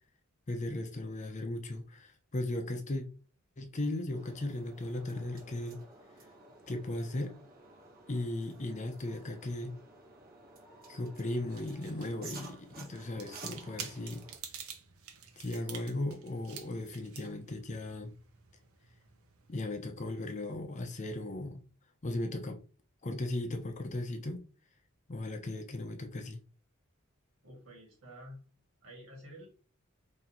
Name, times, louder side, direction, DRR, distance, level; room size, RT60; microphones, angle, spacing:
voice 1, 0.5-3.0 3.6-5.8 6.7-7.3 8.1-9.8 10.9-14.2 15.4-18.1 19.5-21.6 22.0-22.6 23.0-24.4 25.1-26.4, left 1 dB, 35° left, 0.6 m, -37 dB
sound 1, 4.1-14.4, right 3 dB, 45° right, 2.0 m, -53 dB
sound 2, 11.2-19.7, right 8 dB, 85° right, 0.8 m, -49 dB
voice 2, 27.4-28.4 28.8-29.5, equal, 65° right, 2.2 m, -50 dB
3.8 x 2.8 x 4.3 m
head